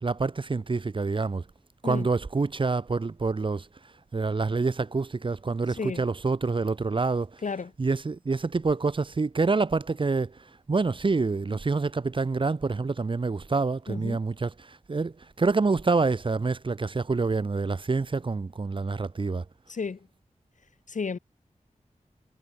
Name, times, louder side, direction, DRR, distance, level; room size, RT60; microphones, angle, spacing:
voice 1, 0.0-1.4 1.8-3.7 4.1-7.4 7.8-19.4, right 4 dB, 40° right, 0.7 m, -27 dB
voice 2, 13.9-14.2 19.7-20.0 20.9-21.2, left 5 dB, 75° left, 2.4 m, -32 dB
wide cardioid pair, 80°, 13 cm